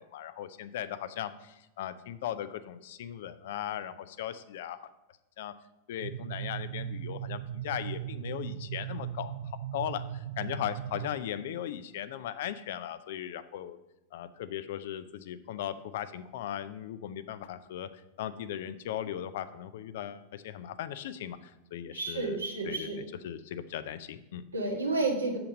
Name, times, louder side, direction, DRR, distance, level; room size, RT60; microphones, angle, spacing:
voice 1, 0.0-4.9 5.4-5.5 5.9-9.3 9.7-13.8 14.1-17.9 18.2-22.4 22.6-22.9 23.2-24.4, left 10 dB, 60° left, 12 dB, 0.5 m, -38 dB
sound 1, 6.0-11.2, right 10 dB, 65° right, 0.4 m, -38 dB
voice 2, 21.9-23.0 24.5-25.4, right 3 dB, 85° right, 1 dB, 1.5 m, -31 dB
7.1 x 5.8 x 5.1 m, 0.93 s
figure-of-eight pair, 90°, 0 cm